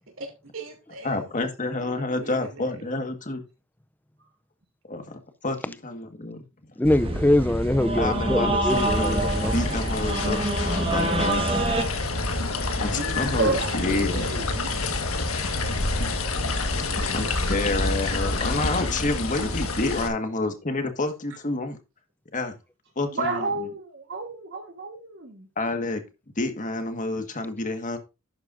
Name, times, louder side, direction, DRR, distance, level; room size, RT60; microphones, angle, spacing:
voice 1, 0.2-1.5 1.8-3.0 12.9-14.9 16.8-17.3 17.7-18.2, right 2 dB, 70° right, 2.9 m, -39 dB
voice 2, 1.0-3.4 4.9-6.5 8.0-9.2 9.5-11.5 12.8-14.2 16.9-21.8 22.3-22.6 23.0-23.4 25.6-26.0 26.4-28.0, left 2 dB, 40° left, 1.6 m, -29 dB
voice 3, 6.8-9.5, left 1 dB, 10° left, 0.4 m, -23 dB
sound 1, 6.8-11.8, right 1 dB, 25° right, 1.6 m, -26 dB
sound 2, 8.7-20.1, left 2 dB, 85° left, 1.5 m, -28 dB
voice 4, 13.1-13.7 23.1-25.5, right 3 dB, 55° right, 1.4 m, -30 dB
11.5 x 8.1 x 2.6 m
head